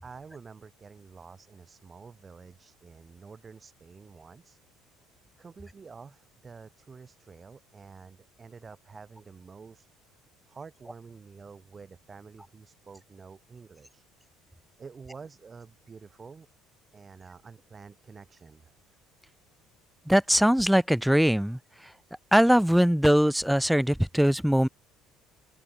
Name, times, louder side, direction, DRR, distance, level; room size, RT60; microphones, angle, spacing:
voice 1, 0.0-4.6 5.4-9.9 10.5-14.1 14.8-16.5 16.9-18.7, right 5 dB, 20° right, 3.3 m, -48 dB
voice 2, 20.1-21.6 22.3-24.7, equal, ahead, 0.3 m, -21 dB
open air
cardioid pair, 165°, 0 cm